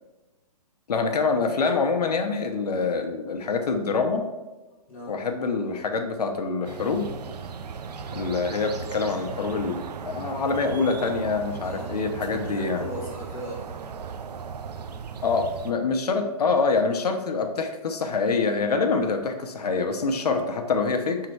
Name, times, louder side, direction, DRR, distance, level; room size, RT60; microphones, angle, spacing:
voice 1, 0.9-4.3 5.1-7.1 8.1-12.9 15.2-21.2, left 4 dB, 75° left, 5 dB, 0.9 m, -25 dB
sound 1, 6.6-15.7, right 6 dB, 80° right, 0.5 m, -37 dB
voice 2, 11.6-13.9, equal, 10° left, -10 dB, 1.0 m, -38 dB
5.4 x 3.8 x 4.6 m, 1.1 s
hypercardioid pair, 170°, 20 cm